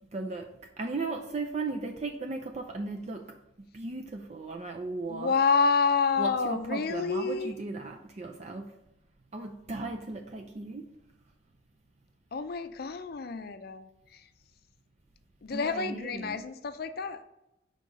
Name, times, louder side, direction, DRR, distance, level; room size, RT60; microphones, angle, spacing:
voice 1, 0.1-5.4 6.2-8.8 9.3-10.9 15.5-16.4, right 3 dB, 35° right, 3 dB, 0.5 m, -37 dB
voice 2, 5.1-7.6 12.3-14.2 15.4-17.2, left 4 dB, 55° left, 11 dB, 0.5 m, -28 dB
5.4 x 3.7 x 4.9 m, 0.88 s
head